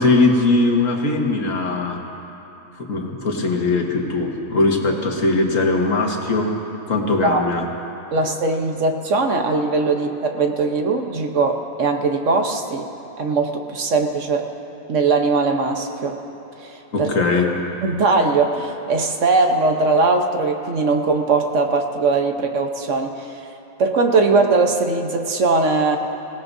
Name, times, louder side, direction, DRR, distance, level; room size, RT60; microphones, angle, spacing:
voice 1, 0.0-2.0 2.8-6.5 6.9-7.6 16.9-17.5, left 3 dB, 70° left, 1 dB, 1.8 m, -20 dB
voice 2, 8.1-12.9 13.2-14.5 14.9-16.2 16.6-17.1 17.8-23.4 23.8-26.0, right 3 dB, 65° right, 4 dB, 1.3 m, -20 dB
26.5 x 17.5 x 2.7 m, 2.9 s
omnidirectional pair, 1.4 m